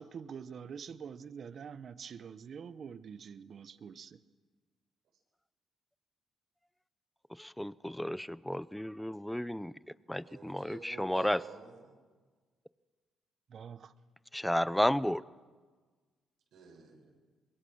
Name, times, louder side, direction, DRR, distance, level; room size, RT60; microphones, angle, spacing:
voice 1, 0.0-4.2 13.5-13.9, right 7 dB, 55° right, 14 dB, 1.0 m, -46 dB
voice 2, 7.4-9.7 10.1-11.4 14.3-15.2, equal, 5° left, 18 dB, 0.6 m, -32 dB
voice 3, 10.1-11.9 16.5-17.1, right 5 dB, 80° right, -1 dB, 7.1 m, -51 dB
24.5 x 21.5 x 6.4 m, 1.4 s
cardioid pair, 90°, 0 cm